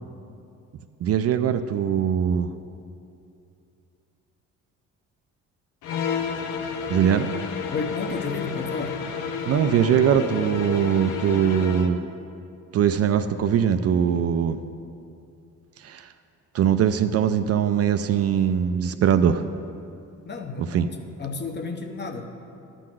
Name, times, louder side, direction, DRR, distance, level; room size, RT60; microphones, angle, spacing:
voice 1, 1.0-2.5 6.9-7.3 9.5-12.0 12.7-14.6 15.8-16.0 16.5-19.4 20.6-20.9, right 8 dB, 55° right, 9 dB, 0.4 m, -21 dB
sound 1, 5.8-12.0, left 6 dB, 85° left, 0.6 m, -31 dB
voice 2, 7.7-9.0 20.2-20.8 21.2-22.3, left 4 dB, 35° left, 4 dB, 0.9 m, -31 dB
11.0 x 3.9 x 7.6 m, 2.7 s
cardioid pair, 90°, 30 cm